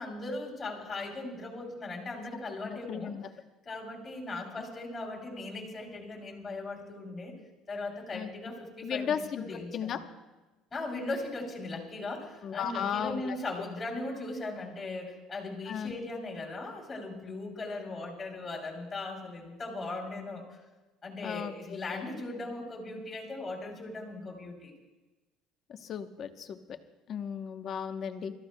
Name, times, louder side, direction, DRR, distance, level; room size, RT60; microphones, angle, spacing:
voice 1, 0.0-3.1 3.6-7.3 7.7-10.1 10.7-20.6 21.0-24.7, left 2 dB, 20° left, 0 dB, 3.2 m, -38 dB
voice 2, 2.6-3.3 4.4-4.5 8.1-8.3 8.8-10.0 12.4-13.3 15.7-15.9 21.2-22.0 25.7-26.6 27.1-28.3, left 8 dB, 40° left, 7 dB, 0.9 m, -35 dB
27.5 x 14.0 x 2.2 m, 1.1 s
cardioid pair, 145°, 0 cm